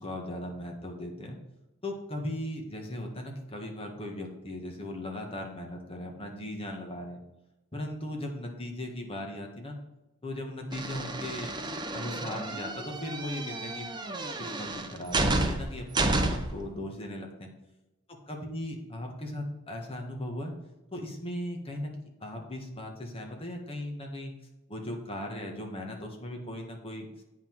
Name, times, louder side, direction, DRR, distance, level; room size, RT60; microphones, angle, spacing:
voice 1, 0.0-1.4 1.8-7.2 7.7-9.8 10.2-11.5 11.9-13.9 14.1-17.5 18.3-20.5 20.9-21.9 22.2-24.3 24.7-27.1, left 1 dB, 25° left, 2 dB, 1.6 m, -38 dB
sound 1, 10.7-16.6, right 2 dB, 20° right, 0.8 m, -31 dB
8.6 x 5.8 x 4.6 m, 0.99 s
head